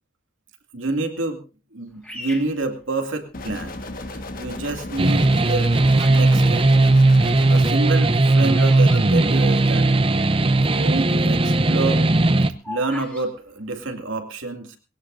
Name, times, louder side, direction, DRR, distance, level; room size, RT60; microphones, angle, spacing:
voice 1, 0.7-1.4 1.7-3.8 4.1-5.7 6.0-6.6 7.5-9.9 10.2-10.3 10.7-12.0 12.7-14.8, right 3 dB, 90° right, 5 dB, 2.4 m, -27 dB
Bird vocalization bird call bird song, 2.0-3.5 4.2-4.6 5.4-6.3 6.6-10.1 10.3-10.4 10.6-11.0 11.4-13.3, left 1 dB, 5° left, 3.0 m, -40 dB
sound 1, 3.3-7.7, left 2 dB, 45° left, 1.6 m, -34 dB
sound 2, 5.0-12.5, right 2 dB, 25° right, 0.6 m, -17 dB
21.0 x 16.5 x 2.7 m, 0.33 s
head